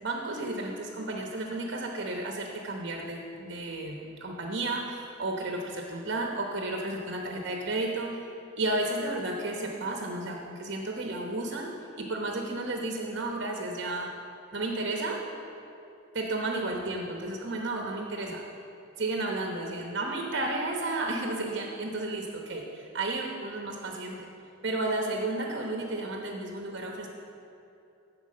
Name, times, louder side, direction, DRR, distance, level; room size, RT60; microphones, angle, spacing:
voice 1, 0.0-8.1 8.6-11.7 12.0-14.1 14.5-15.2 16.1-18.4 19.0-24.3 24.6-27.1, right 2 dB, 60° right, 1 dB, 1.0 m, -32 dB
14.0 x 4.8 x 8.5 m, 2.7 s
head